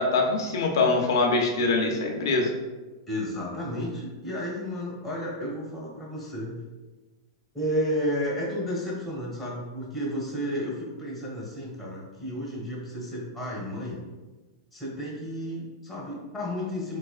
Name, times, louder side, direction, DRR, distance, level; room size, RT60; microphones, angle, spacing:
voice 1, 0.0-2.5, left 3 dB, 75° left, 2 dB, 0.7 m, -23 dB
voice 2, 3.1-6.6 7.5-14.0 14.7-17.0, equal, ahead, -6 dB, 1.3 m, -32 dB
3.9 x 3.4 x 2.4 m, 1.2 s
hypercardioid pair, 130°, 2 cm